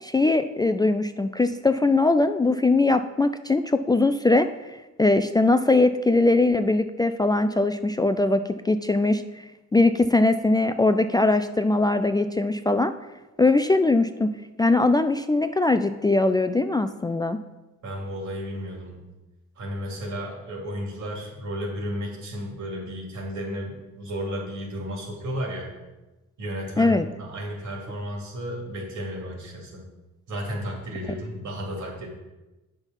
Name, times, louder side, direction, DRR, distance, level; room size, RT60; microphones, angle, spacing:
voice 1, 0.0-4.5 5.0-9.4 9.7-12.9 13.4-14.3 14.6-17.4 26.8-27.1, left 2 dB, 15° left, 9 dB, 0.3 m, -21 dB
voice 2, 17.8-18.9 19.6-25.7 26.4-29.9 30.3-32.1, equal, 75° right, -1 dB, 2.9 m, -33 dB
8.1 x 5.4 x 5.3 m, 1.1 s
cardioid pair, 90°, 30 cm